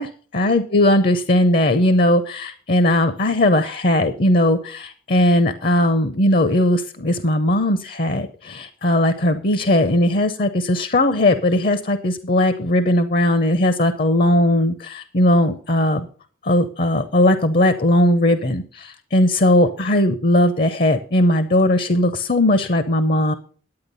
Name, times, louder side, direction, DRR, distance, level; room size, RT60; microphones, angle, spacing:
voice 1, 0.3-16.1 16.4-23.3, left 1 dB, 45° left, 11 dB, 0.7 m, -18 dB
10.5 x 8.8 x 5.4 m, 0.42 s
head